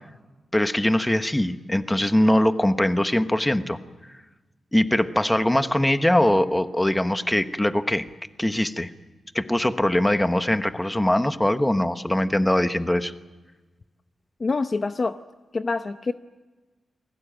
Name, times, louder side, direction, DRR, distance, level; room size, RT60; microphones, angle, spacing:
voice 1, 0.5-3.8 4.7-8.0 8.4-8.9 9.3-13.1, left 1 dB, 10° left, 9 dB, 1.1 m, -22 dB
voice 2, 14.4-15.2 15.5-16.1, left 3 dB, 35° left, 9 dB, 0.8 m, -25 dB
29.0 x 21.0 x 9.1 m, 1.2 s
wide cardioid pair, 145°, 0 cm